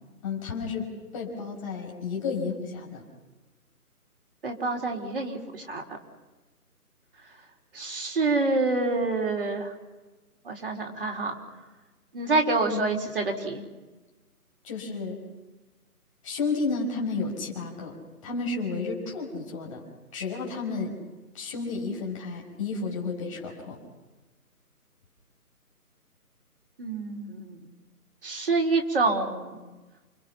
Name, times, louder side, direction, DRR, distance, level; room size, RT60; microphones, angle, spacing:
voice 1, 0.2-3.0 12.7-12.9 14.6-15.2 16.2-18.0 18.2-19.8 20.1-21.0 21.3-23.8, left 4 dB, 20° left, -1 dB, 5.7 m, -32 dB
voice 2, 4.4-5.8 7.7-9.7 10.4-11.4 12.1-13.6 26.8-27.6 28.2-29.6, right 3 dB, 35° right, 2 dB, 4.0 m, -27 dB
29.5 x 26.0 x 5.9 m, 1.2 s
figure-of-eight pair, 165°, 45 cm